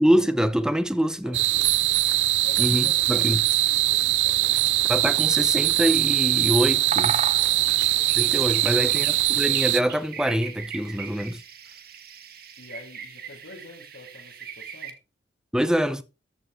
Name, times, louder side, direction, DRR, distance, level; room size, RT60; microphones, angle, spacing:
voice 1, 0.0-1.4 2.6-3.4 4.9-7.2 8.2-9.1 9.4-11.4 15.5-16.0, equal, 5° right, 0.7 m, -24 dB
voice 2, 1.2-2.0 2.4-4.8 7.4-9.3 12.6-15.0, left 2 dB, 75° left, 2.1 m, -47 dB
sound 1, 1.3-9.8, right 16 dB, 75° right, 0.5 m, -22 dB
Bird vocalization bird call bird song, 4.5-9.5, right 5 dB, 35° right, 0.8 m, -37 dB
sound 2, 7.6-14.9, right 7 dB, 55° right, 1.8 m, -40 dB
14.0 x 5.9 x 4.6 m
head